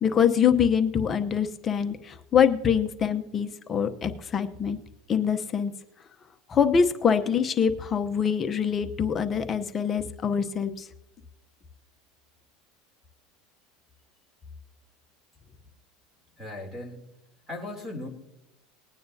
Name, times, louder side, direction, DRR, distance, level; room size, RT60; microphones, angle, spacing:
voice 1, 0.0-4.8 5.1-5.7 6.5-10.8, left 7 dB, 25° left, 7 dB, 0.8 m, -24 dB
voice 2, 16.4-17.0 17.5-18.1, left 2 dB, 5° right, 1 dB, 3.1 m, -37 dB
20.0 x 9.2 x 2.8 m, 0.89 s
supercardioid pair, 140°, 0 cm